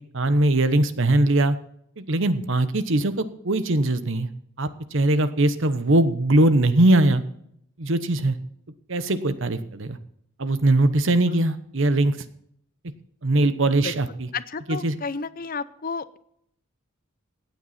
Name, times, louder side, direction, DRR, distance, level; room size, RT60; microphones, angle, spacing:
voice 1, 0.1-1.6 2.0-4.3 4.6-7.2 7.8-8.4 8.9-10.0 10.4-12.2 13.2-14.3 14.7-14.9, right 2 dB, 60° right, 12 dB, 1.0 m, -21 dB
voice 2, 14.3-16.2, left 5 dB, 45° left, 15 dB, 0.6 m, -32 dB
16.5 x 9.4 x 4.2 m, 0.71 s
head